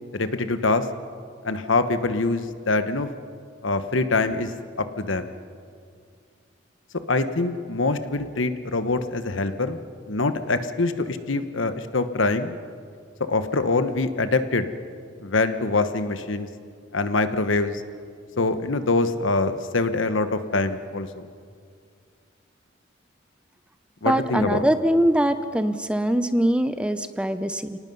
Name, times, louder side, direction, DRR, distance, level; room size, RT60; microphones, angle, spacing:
voice 1, 0.1-0.9 1.4-3.1 3.6-4.5 4.8-5.3 7.1-9.8 10.1-12.5 13.3-14.7 15.2-16.5 16.9-17.8 18.4-21.2 24.0-24.6, left 3 dB, 90° left, 10 dB, 1.2 m, -24 dB
voice 2, 24.0-27.8, right 1 dB, 5° right, 11 dB, 0.6 m, -22 dB
30.0 x 18.5 x 5.5 m, 2.3 s
head